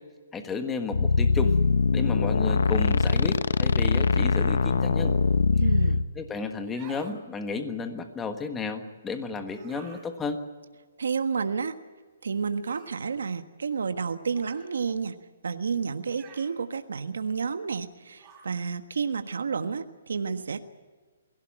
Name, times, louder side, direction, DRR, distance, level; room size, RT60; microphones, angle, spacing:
voice 1, 0.3-1.6 1.9-5.1 6.2-10.4, left 4 dB, 10° left, 7 dB, 1.5 m, -32 dB
sound 1, 0.9-6.0, left 4 dB, 75° left, 1.1 m, -22 dB
voice 2, 5.6-6.0 11.0-11.8 12.2-15.2 15.4-20.6, right 5 dB, 85° right, 9 dB, 1.4 m, -30 dB
sound 2, 6.6-7.2 9.4-10.1 12.6-13.0 14.3-14.7 16.1-16.6 18.2-18.5, right 5 dB, 20° right, 3.6 m, -49 dB
23.0 x 16.5 x 8.9 m, 1.4 s
hypercardioid pair, 165°, 0 cm